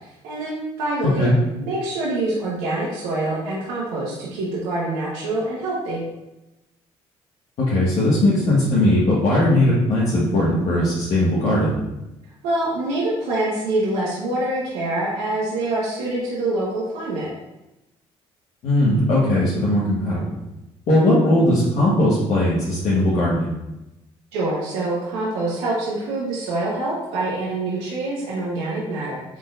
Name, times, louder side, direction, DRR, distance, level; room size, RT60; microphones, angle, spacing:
voice 1, 0.2-1.3 1.5-6.0 12.4-17.3 20.9-21.2 24.3-29.4, right 2 dB, 85° right, -7 dB, 1.2 m, -25 dB
voice 2, 1.0-1.3 7.6-11.7 18.6-20.3 20.9-23.5, left 1 dB, 65° left, -9 dB, 1.5 m, -19 dB
4.8 x 3.9 x 2.6 m, 0.93 s
supercardioid pair, 75°, 13 cm